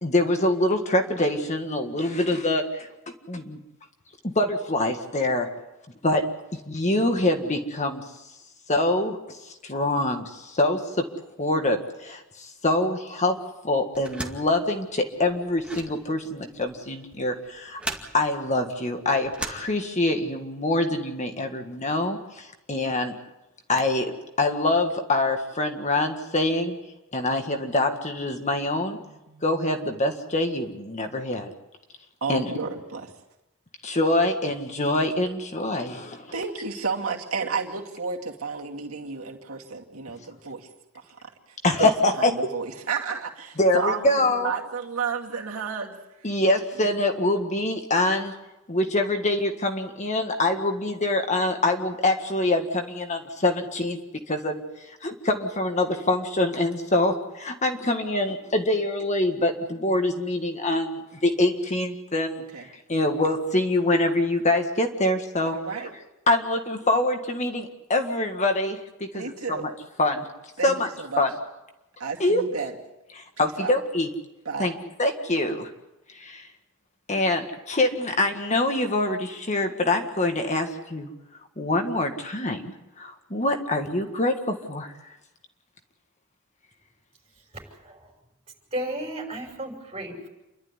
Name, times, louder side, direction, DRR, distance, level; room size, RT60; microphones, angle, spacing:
voice 1, 0.0-2.9 3.3-3.6 4.2-5.5 6.0-6.2 6.7-8.0 8.7-9.4 9.6-11.1 11.4-13.4 13.6-17.8 18.1-23.2 23.7-26.8 27.1-29.0 29.4-31.5 32.3-32.5 33.8-36.3 41.6-42.3 43.6-44.5 46.2-48.4 48.7-54.0 54.3-54.6 55.0-62.4 62.9-65.6 66.3-69.7 70.0-70.3 70.6-70.9 71.2-71.3 72.2-72.4 73.4-74.1 74.6-75.7 76.2-76.5 77.1-81.1 81.6-84.9, left 2 dB, 35° left, 5 dB, 1.7 m, -25 dB
sound 1, 13.9-20.3, right 2 dB, 5° right, 2.2 m, -39 dB
voice 2, 29.0-29.4 32.2-33.1 36.3-40.7 40.9-41.0 41.8-41.9 42.1-46.0 62.5-62.6 65.4-65.9 69.1-69.7 70.6-71.2 72.0-72.7 73.4-73.7 74.4-74.7, right 5 dB, 85° right, 0 dB, 2.4 m, -31 dB
voice 3, 87.4-88.1 88.7-90.3, right 1 dB, 30° right, 1 dB, 6.0 m, -34 dB
28.5 x 12.0 x 9.8 m, 0.98 s
head